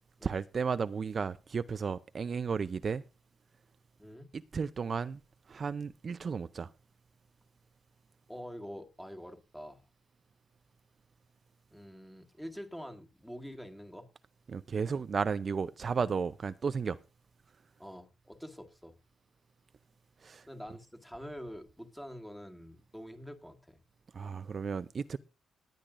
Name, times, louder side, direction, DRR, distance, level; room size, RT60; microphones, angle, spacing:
voice 1, 0.2-3.0 4.3-5.2 5.5-6.7 14.5-17.0 20.2-20.5 24.1-25.2, right 5 dB, 40° right, 0.5 m, -34 dB
voice 2, 4.0-4.3 8.3-9.8 11.7-14.1 17.8-19.0 20.5-23.8, equal, ahead, 1.9 m, -46 dB
19.0 x 10.5 x 2.5 m
cardioid pair, 95°, 0 cm